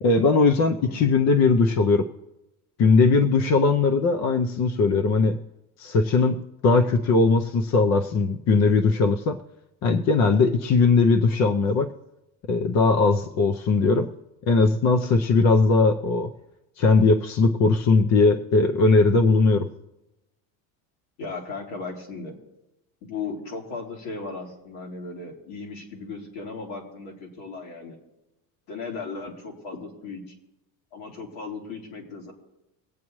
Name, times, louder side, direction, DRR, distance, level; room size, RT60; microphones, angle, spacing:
voice 1, 0.0-2.1 2.8-5.4 5.8-9.4 9.8-11.9 12.5-14.1 14.5-16.3 16.8-19.7, left 4 dB, 40° left, 7 dB, 0.7 m, -19 dB
voice 2, 21.2-22.3 23.0-28.0 28.7-30.2 30.9-32.3, left 4 dB, 80° left, -1 dB, 3.1 m, -36 dB
23.0 x 8.5 x 3.1 m, 0.94 s
cardioid pair, 160°, 40 cm